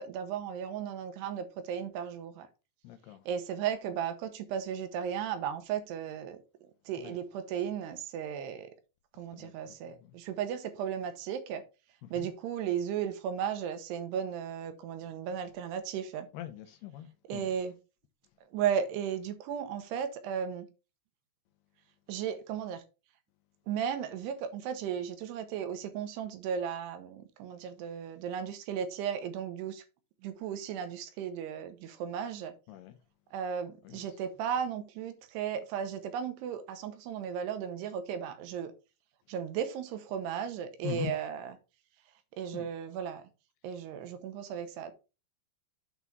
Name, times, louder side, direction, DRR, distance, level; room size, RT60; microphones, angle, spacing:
voice 1, 0.0-2.5 3.3-6.4 6.9-8.7 9.2-11.6 12.1-16.3 17.3-17.7 18.5-20.7 22.1-22.8 23.7-29.8 30.2-32.5 33.3-38.7 39.3-41.5 42.4-43.3 43.6-44.9, right 8 dB, 75° right, 2.9 m, -35 dB
voice 2, 2.8-3.3 7.0-7.2 9.3-10.2 12.0-12.3 16.3-17.5 32.7-33.0 33.8-34.1 40.8-41.1 42.5-42.7, left 11 dB, 80° left, 2.6 m, -42 dB
8.3 x 4.0 x 4.5 m
omnidirectional pair, 4.9 m